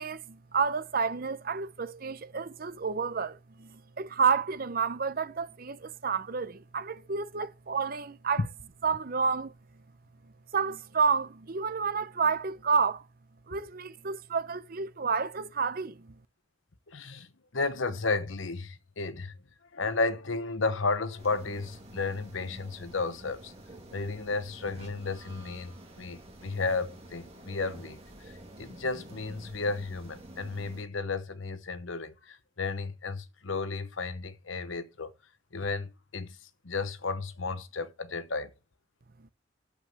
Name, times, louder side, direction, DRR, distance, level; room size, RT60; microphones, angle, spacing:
voice 1, 0.0-8.4 8.8-9.5 10.5-13.0 13.5-16.2, right 5 dB, 50° right, 0.7 m, -30 dB
voice 2, 16.9-19.3 19.7-23.5 23.9-28.0 28.2-35.1 35.5-36.4 36.6-38.5, left 3 dB, 90° left, 1.0 m, -33 dB
sound 1, 21.2-30.8, right 1 dB, 30° right, 2.5 m, -49 dB
8.4 x 7.8 x 6.7 m
head